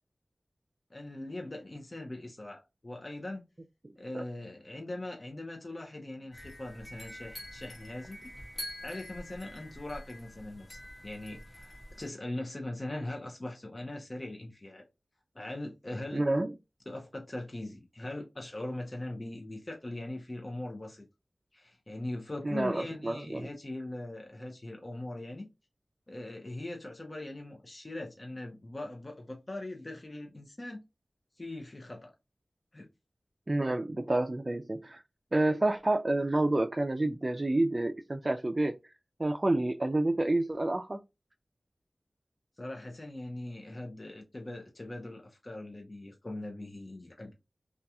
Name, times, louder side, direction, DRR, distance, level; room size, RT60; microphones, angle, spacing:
voice 1, 0.9-3.4 4.0-8.3 8.8-14.9 15.3-16.3 16.9-21.1 21.5-25.5 26.1-30.8 31.4-32.1 32.7-32.9 42.6-47.3, left 1 dB, 40° left, 0.7 m, -41 dB
sound 1, 6.3-12.1, left 1 dB, 65° left, 1.1 m, -46 dB
voice 2, 16.1-16.5 22.4-23.5 33.5-35.0 35.3-38.7 39.2-41.0, right 2 dB, 40° right, 0.3 m, -29 dB
2.8 x 2.3 x 2.3 m
wide cardioid pair, 50°, 0 cm